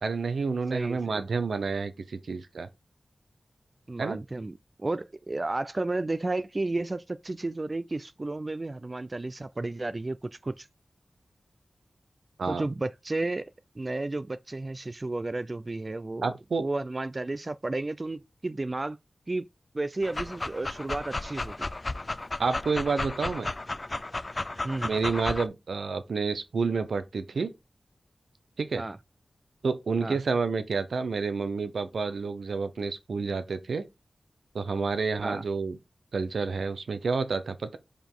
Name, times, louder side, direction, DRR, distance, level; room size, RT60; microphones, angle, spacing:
voice 1, 0.0-2.7 4.0-4.2 12.4-12.6 16.2-16.7 22.4-23.5 24.8-27.5 28.6-28.8 29.6-33.8 34.5-35.8 36.1-37.8, right 4 dB, 85° right, 0.9 m, -29 dB
voice 2, 0.7-1.2 3.9-4.5 4.8-10.7 12.5-13.5 13.8-16.3 16.6-19.0 19.3-19.5 19.7-21.7 24.6-25.0 28.7-29.0 30.0-30.2 35.2-35.4, right 2 dB, 40° right, 0.5 m, -32 dB
Dog, 20.0-25.5, left 2 dB, 40° left, 0.5 m, -34 dB
5.1 x 5.0 x 3.8 m
cardioid pair, 50°, 0 cm